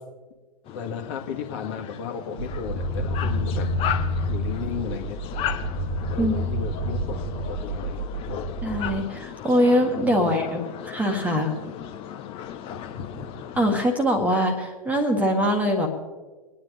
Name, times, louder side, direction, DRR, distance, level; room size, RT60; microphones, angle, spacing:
sound 1, 0.6-13.8, left 10 dB, 25° left, 1.0 m, -36 dB
voice 1, 0.7-3.7 4.3-5.2 6.1-7.2 7.5-8.0 8.3-8.5 10.1-10.4 12.7-13.1, left 7 dB, 45° left, 2 dB, 1.9 m, -34 dB
Machinery BN, 2.4-9.0, equal, 25° right, 1.7 m, -29 dB
voice 2, 8.6-11.5 13.6-15.9, equal, 5° right, 4 dB, 1.6 m, -23 dB
24.5 x 10.0 x 3.4 m, 1.3 s
figure-of-eight pair, 105°, 21 cm